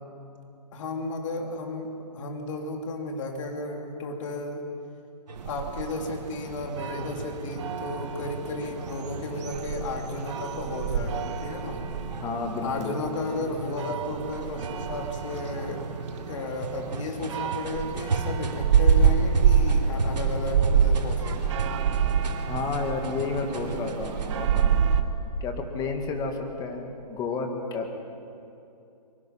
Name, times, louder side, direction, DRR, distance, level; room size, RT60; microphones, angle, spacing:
voice 1, 0.7-4.6 5.4-11.8 12.6-15.8 16.3-21.6, left 2 dB, 45° left, 3 dB, 2.9 m, -33 dB
sound 1, 5.3-25.0, right 7 dB, 45° right, 1.3 m, -27 dB
sound 2, 5.3-24.6, right 3 dB, 80° right, 2.8 m, -36 dB
voice 2, 12.2-12.9 22.5-24.8 25.4-28.0, left 4 dB, 15° left, 4 dB, 2.0 m, -31 dB
23.5 x 23.0 x 5.8 m, 2.7 s
hypercardioid pair, 150°, 21 cm